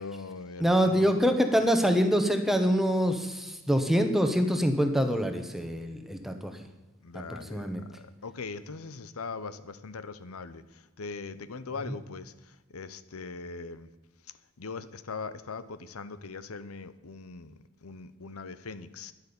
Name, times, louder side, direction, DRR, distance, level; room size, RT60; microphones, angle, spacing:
voice 1, 0.0-1.2 7.0-12.3 12.7-13.9 14.6-19.1, left 4 dB, 85° left, 14 dB, 0.8 m, -41 dB
voice 2, 0.6-6.5 7.3-7.8 11.9-12.0, equal, ahead, 6 dB, 1.2 m, -25 dB
12.0 x 10.5 x 7.1 m, 1.1 s
head